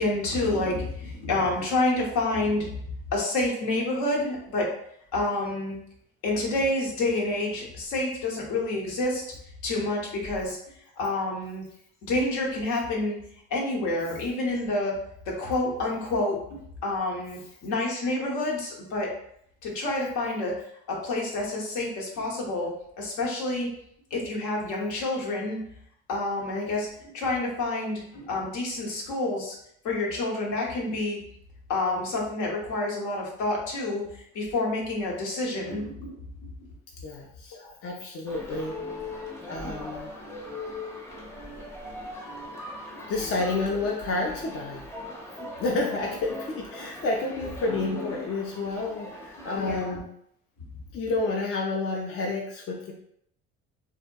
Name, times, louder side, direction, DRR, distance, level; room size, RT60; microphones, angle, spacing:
voice 1, 0.0-2.7 3.1-4.7 5.1-5.8 6.2-9.2 9.6-10.6 11.0-11.6 12.1-13.2 13.5-14.9 15.3-19.1 19.6-20.6 20.9-23.7 24.1-25.6 26.1-29.5 29.8-31.2 31.7-36.2 37.5-37.7 49.5-50.0, left 2 dB, 70° left, -2 dB, 0.9 m, -28 dB
voice 2, 37.0-38.8 39.5-40.1 43.1-44.8 45.6-50.1 50.9-52.9, left 3 dB, 45° left, -1 dB, 0.5 m, -30 dB
sound 1, 38.3-49.9, left 1 dB, 10° left, 0.7 m, -40 dB
2.7 x 2.1 x 2.2 m, 0.70 s
supercardioid pair, 75°, 32 cm